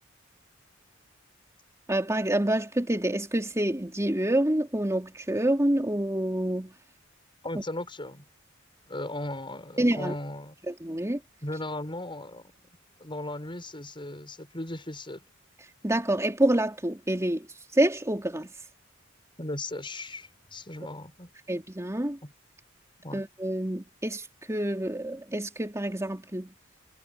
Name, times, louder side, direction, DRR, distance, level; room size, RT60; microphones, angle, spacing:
voice 1, 1.9-6.7 9.8-10.1 10.7-11.2 15.8-17.5 17.7-18.5 21.5-22.2 23.1-26.5, right 1 dB, 15° right, 2.9 m, -27 dB
voice 2, 7.4-8.3 8.8-10.5 11.4-12.5 13.0-15.2 19.4-21.3 22.2-22.3 23.0-23.2, left 1 dB, 25° left, 6.4 m, -37 dB
head